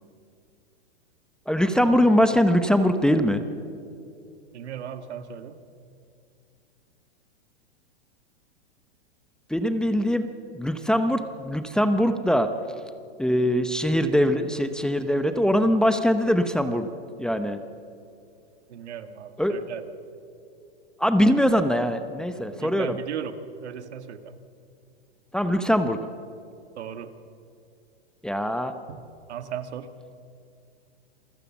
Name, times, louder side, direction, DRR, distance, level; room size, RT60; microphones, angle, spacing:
voice 1, 1.5-3.4 9.5-10.3 10.5-12.5 13.2-16.9 17.2-17.6 19.4-19.5 21.0-23.0 25.3-26.0 28.2-28.7, equal, ahead, 8 dB, 0.8 m, -22 dB
voice 2, 4.5-5.6 18.7-19.8 22.6-23.3 23.6-24.4 26.8-27.2 28.9-29.0 29.3-29.9, right 9 dB, 85° right, 10 dB, 1.7 m, -36 dB
26.5 x 16.0 x 7.3 m, 2.5 s
hypercardioid pair, 140°, 33 cm